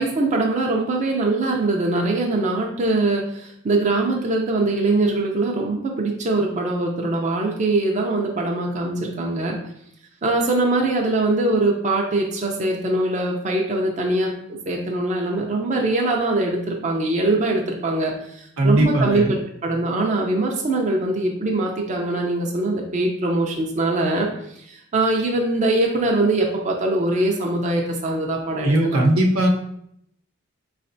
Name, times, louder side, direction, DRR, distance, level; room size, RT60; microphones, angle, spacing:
voice 1, 0.0-9.6 10.2-19.4 19.6-29.0, right 2 dB, 35° right, 0 dB, 0.5 m, -22 dB
voice 2, 18.6-19.3 28.6-29.5, right 1 dB, 85° right, 0 dB, 0.8 m, -18 dB
4.9 x 3.2 x 2.6 m, 0.72 s
head